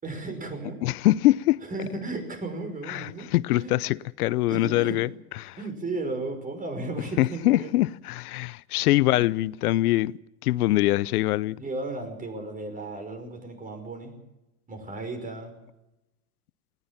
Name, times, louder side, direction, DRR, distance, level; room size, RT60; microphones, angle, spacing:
voice 1, 0.0-0.8 1.6-3.3 3.5-3.8 4.5-5.0 5.6-7.7 9.1-9.3 11.6-14.1 14.7-15.5, right 2 dB, 20° right, 5.5 m, -34 dB
voice 2, 0.8-1.6 2.9-5.1 5.4-5.6 7.2-10.1 10.4-11.6, left 16 dB, 80° left, 0.8 m, -23 dB
19.5 x 19.5 x 7.3 m
supercardioid pair, 125°, 45 cm